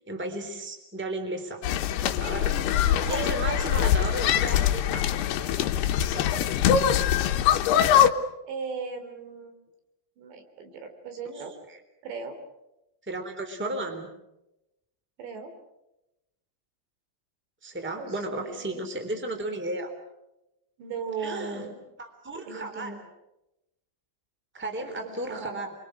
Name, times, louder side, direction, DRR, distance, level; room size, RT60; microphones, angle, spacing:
voice 1, 0.1-1.6 2.0-5.1 11.7-11.8 13.1-14.1 17.6-19.9 21.2-21.7 22.0-22.9 24.5-25.7, right 2 dB, 5° right, 5 dB, 2.8 m, -34 dB
sound 1, 1.6-8.1, left 10 dB, 75° left, 3.0 m, -23 dB
voice 2, 3.1-3.9 6.1-6.3 8.4-9.6 10.2-11.5 12.0-12.4 15.2-15.5 18.0-18.8 20.8-21.8 22.4-23.0 24.8-25.6, right 5 dB, 75° right, 6 dB, 5.5 m, -37 dB
28.5 x 24.0 x 6.4 m, 0.90 s
omnidirectional pair, 5.0 m